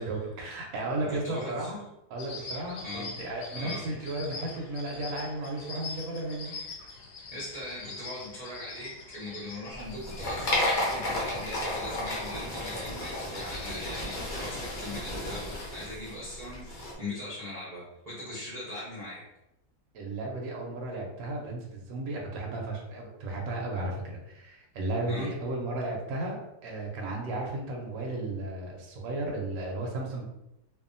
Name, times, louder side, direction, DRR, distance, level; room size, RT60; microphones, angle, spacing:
voice 1, 0.0-1.8 2.1-6.6 19.9-30.3, right 2 dB, 70° right, -1 dB, 1.0 m, -34 dB
voice 2, 1.0-1.7 2.8-3.1 3.5-4.1 7.3-19.3 25.1-25.3, left 1 dB, 50° right, -7 dB, 0.5 m, -40 dB
sound 1, 2.2-16.9, left 3 dB, 70° left, 1.0 m, -45 dB
sound 2, 9.7-16.9, left 1 dB, 50° left, 0.6 m, -33 dB
2.7 x 2.3 x 2.5 m, 0.90 s
omnidirectional pair, 1.7 m